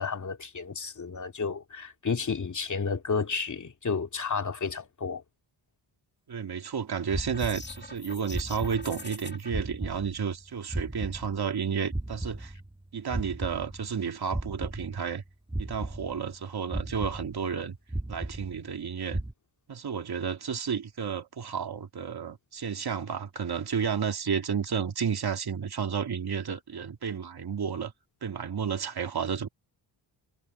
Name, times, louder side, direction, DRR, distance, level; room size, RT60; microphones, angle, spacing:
voice 1, 0.0-5.2, left 5 dB, 40° left, 2.6 m, -31 dB
voice 2, 6.3-12.5 12.9-15.2 15.6-17.8 18.1-19.2 19.7-27.9 28.2-29.5, right 7 dB, 55° right, 2.8 m, -32 dB
sound 1, 7.1-8.0 8.3-9.2 9.5-11.6 11.9-14.0 14.3-15.2 15.5-16.4 16.7-17.6 17.9-18.8 19.1-19.3, right 1 dB, 10° right, 2.7 m, -36 dB
sound 2, 7.3-9.5, left 3 dB, 25° left, 2.4 m, -44 dB
cardioid pair, 75°, 46 cm